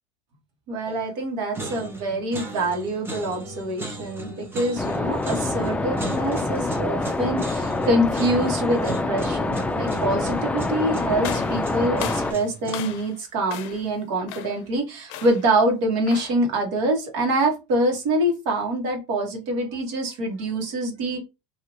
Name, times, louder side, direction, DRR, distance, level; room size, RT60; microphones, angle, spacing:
voice 1, 0.7-21.2, right 1 dB, 70° right, 1 dB, 1.4 m, -25 dB
sound 1, 0.9-1.2 1.5-13.0, right 2 dB, 15° right, 0.8 m, -38 dB
sound 2, 4.8-12.3, left 2 dB, 10° left, 0.4 m, -26 dB
sound 3, 11.2-13.2 13.5-13.9 14.3-14.7 15.1-15.5 16.1-16.4, left 11 dB, 65° left, 0.5 m, -36 dB
2.8 x 2.7 x 3.1 m, 0.25 s
hypercardioid pair, 100°, 16 cm